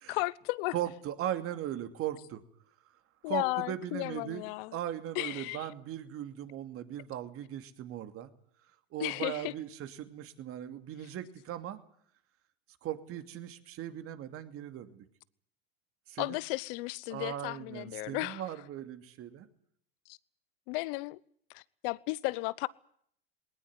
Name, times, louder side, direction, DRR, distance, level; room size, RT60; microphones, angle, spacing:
voice 1, 0.1-0.7 3.2-4.7 5.1-5.7 9.0-9.5 16.2-18.4 20.1-20.2 20.7-21.2 21.5-22.7, left 23 dB, 65° left, 1.0 m, -34 dB
voice 2, 0.7-2.4 3.3-4.4 4.7-8.3 8.9-11.8 12.8-15.0 16.1-16.4 17.1-19.5, right 11 dB, 45° right, 2.7 m, -38 dB
20.0 x 18.5 x 9.6 m
supercardioid pair, 105°, 31 cm